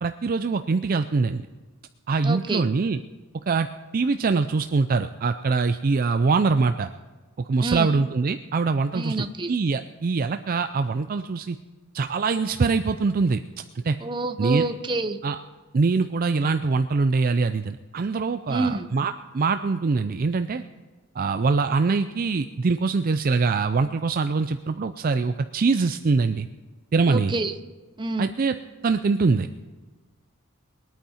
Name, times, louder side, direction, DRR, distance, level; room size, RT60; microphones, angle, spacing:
voice 1, 0.0-1.5 2.1-3.0 3.5-3.7 3.9-6.9 7.5-11.6 11.9-13.4 13.7-14.0 14.4-14.6 15.2-15.4 15.7-20.6 21.2-26.5 26.9-27.3 28.2-28.5 28.8-29.5, right 4 dB, 40° right, 9 dB, 0.4 m, -23 dB
voice 2, 2.2-2.6 7.6-8.0 8.9-9.5 14.0-15.2 18.5-18.9 27.1-27.5 28.0-28.3, right 3 dB, 20° right, 8 dB, 0.8 m, -27 dB
22.0 x 9.2 x 4.3 m, 1.3 s
head